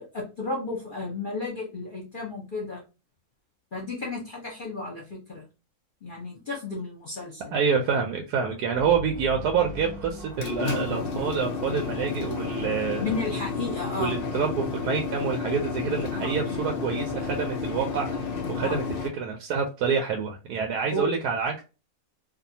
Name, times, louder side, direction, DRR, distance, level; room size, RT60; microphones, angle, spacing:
voice 1, 0.0-2.8 3.7-5.4 6.0-7.5 12.9-14.2 16.1-16.3 18.6-18.8 20.9-21.1, left 2 dB, 45° left, -3 dB, 0.8 m, -33 dB
voice 2, 7.5-13.1 14.0-18.8 19.1-21.6, right 6 dB, 85° right, 2 dB, 1.1 m, -27 dB
sound 1, 8.7-12.5, left 1 dB, 40° right, 0.4 m, -42 dB
sound 2, 10.2-19.1, left 4 dB, 90° left, 0.5 m, -31 dB
2.6 x 2.3 x 2.7 m, 0.30 s
omnidirectional pair, 1.6 m